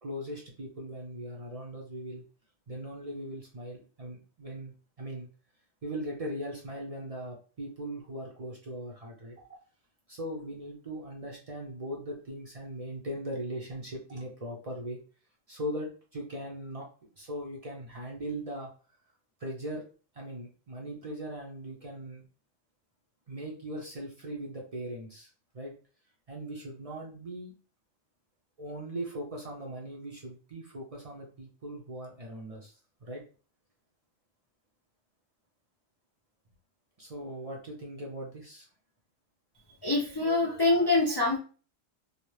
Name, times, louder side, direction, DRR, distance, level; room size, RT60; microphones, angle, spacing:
voice 1, 0.0-2.2 2.7-5.3 5.8-9.5 10.1-15.0 15.5-16.9 17.1-18.7 19.4-19.8 20.1-22.2 23.3-25.3 25.5-25.7 26.3-27.5 28.6-32.7 33.0-33.2 37.0-38.7, right 1 dB, 40° right, -2 dB, 0.5 m, -39 dB
voice 2, 39.8-41.4, left 2 dB, 40° left, -4 dB, 0.3 m, -25 dB
2.8 x 2.0 x 3.1 m, 0.38 s
omnidirectional pair, 1.2 m